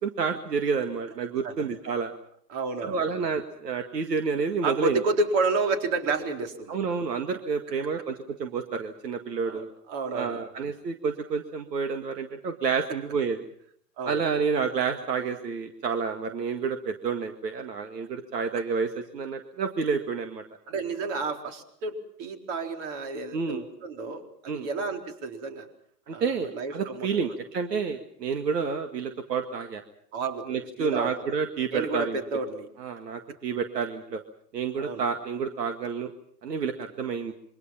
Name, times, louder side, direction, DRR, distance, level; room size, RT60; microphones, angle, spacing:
voice 1, 0.0-2.1 2.8-5.0 6.7-9.7 10.1-13.5 14.0-20.4 23.3-23.6 24.5-24.7 26.1-29.8 30.5-32.2 32.8-34.2 34.5-36.1 36.4-37.3, right 5 dB, 75° right, 7 dB, 2.0 m, -29 dB
voice 2, 2.5-3.1 4.6-6.8 9.5-10.4 14.0-14.3 20.7-25.7 26.1-27.3 30.1-31.1 31.7-32.7 34.8-35.0, right 3 dB, 45° right, 5 dB, 4.3 m, -31 dB
27.0 x 24.0 x 5.8 m, 0.65 s
hypercardioid pair, 120°, 49 cm